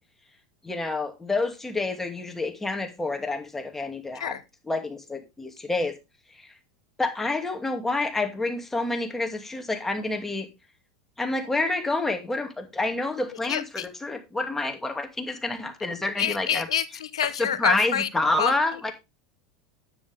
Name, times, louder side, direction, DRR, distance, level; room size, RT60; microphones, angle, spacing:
voice 1, 0.6-4.4 4.6-5.9 6.3-6.5 7.0-10.5 11.2-16.7 17.2-18.9, left 2 dB, 10° left, 5 dB, 2.5 m, -28 dB
voice 2, 13.5-13.8 16.2-18.1 18.4-18.5, left 9 dB, 85° left, 15 dB, 1.0 m, -27 dB
9.9 x 9.6 x 3.5 m, 0.24 s
hypercardioid pair, 95°, 3 cm